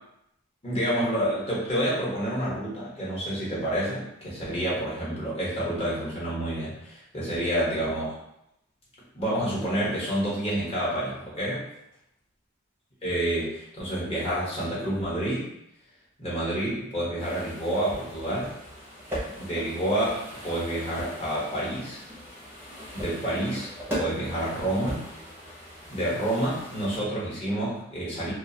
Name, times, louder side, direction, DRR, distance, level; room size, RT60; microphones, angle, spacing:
voice 1, 0.6-8.2 9.1-11.7 13.0-15.5 16.2-18.5 19.3-22.0 22.9-23.7 23.9-25.0 25.9-28.3, right 1 dB, 25° left, -7 dB, 0.9 m, -28 dB
sound 1, 17.2-27.0, equal, 10° right, 0.6 m, -39 dB
2.3 x 2.2 x 2.7 m, 0.80 s
head